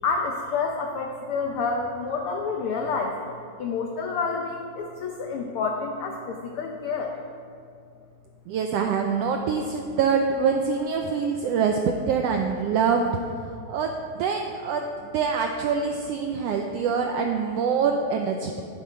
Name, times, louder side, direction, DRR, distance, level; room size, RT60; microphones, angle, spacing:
voice 1, 0.0-3.2 3.6-7.1, left 4 dB, 85° left, 2 dB, 1.2 m, -28 dB
voice 2, 8.5-13.1 13.7-18.6, right 6 dB, 90° right, 3 dB, 1.4 m, -25 dB
11.5 x 8.9 x 4.4 m, 2.4 s
omnidirectional pair, 3.4 m